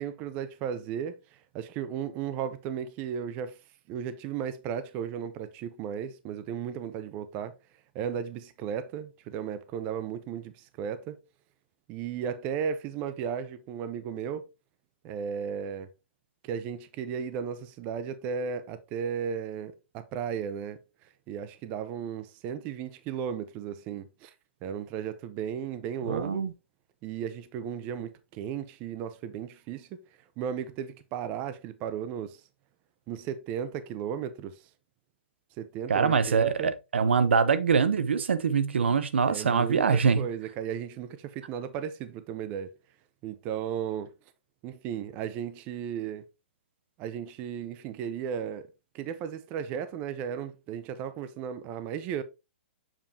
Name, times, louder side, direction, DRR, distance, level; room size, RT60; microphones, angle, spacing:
voice 1, 0.0-3.6 3.9-7.5 7.9-11.2 11.9-14.4 15.0-15.9 16.4-20.8 21.3-24.3 24.6-26.5 27.0-29.9 30.4-32.4 33.1-34.6 35.6-36.7 39.2-42.7 43.2-44.1 44.6-46.2 47.0-48.7 48.9-52.2, right 8 dB, 25° right, 0.6 m, -35 dB
voice 2, 26.1-26.5 35.9-40.3, right 6 dB, 90° right, 0.8 m, -24 dB
7.3 x 5.4 x 2.8 m
hypercardioid pair, 160°, 6 cm